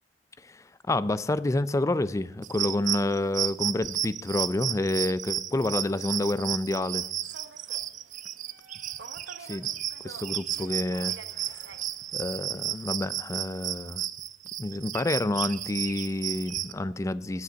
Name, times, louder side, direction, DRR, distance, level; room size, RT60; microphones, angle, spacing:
voice 1, 0.5-7.1 9.5-9.7 10.0-11.2 11.5-11.7 12.1-14.0 14.6-17.4, left 2 dB, 15° left, 0.4 m, -29 dB
sound 1, 2.4-16.7, right 12 dB, 45° right, 0.4 m, -33 dB
Human voice / Subway metro underground, 7.2-12.9, right 5 dB, 70° right, 0.9 m, -49 dB
9.6 x 7.8 x 8.9 m
head